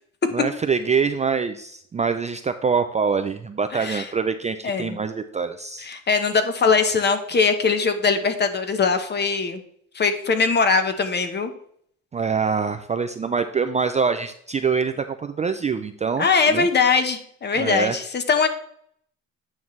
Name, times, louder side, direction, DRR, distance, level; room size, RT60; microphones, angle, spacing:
voice 1, 0.3-5.9 12.1-16.3 16.5-16.7 17.6-17.9, right 5 dB, 20° right, 8 dB, 0.4 m, -24 dB
voice 2, 3.7-4.1 4.6-5.0 5.8-9.6 9.9-11.5 16.2-18.5, left 5 dB, 30° left, 8 dB, 1.0 m, -21 dB
9.3 x 5.7 x 3.2 m, 0.64 s
cardioid pair, 110°, 32 cm